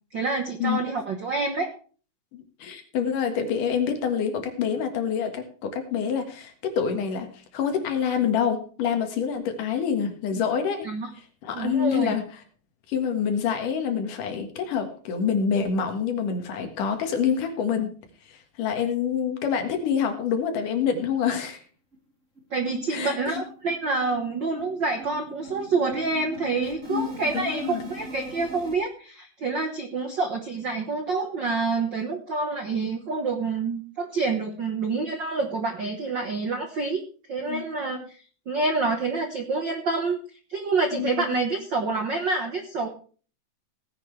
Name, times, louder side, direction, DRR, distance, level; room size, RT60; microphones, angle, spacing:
voice 1, 0.1-1.7 10.8-11.1 11.5-12.1 22.5-37.0 37.3-38.2 38.5-40.2 40.5-42.9, right 3 dB, 60° right, 5 dB, 1.2 m, -27 dB
voice 2, 2.3-10.9 11.4-12.2 12.9-17.9 18.3-21.6 22.9-23.4 26.9-27.8 37.5-37.6 40.9-41.4, left 7 dB, 70° left, 6 dB, 3.2 m, -27 dB
sound 1, 21.5-21.6 21.9-22.0 22.4-22.5 22.8-28.8, right 1 dB, 25° right, 3.0 m, -42 dB
17.5 x 10.0 x 3.3 m, 0.40 s
omnidirectional pair, 4.0 m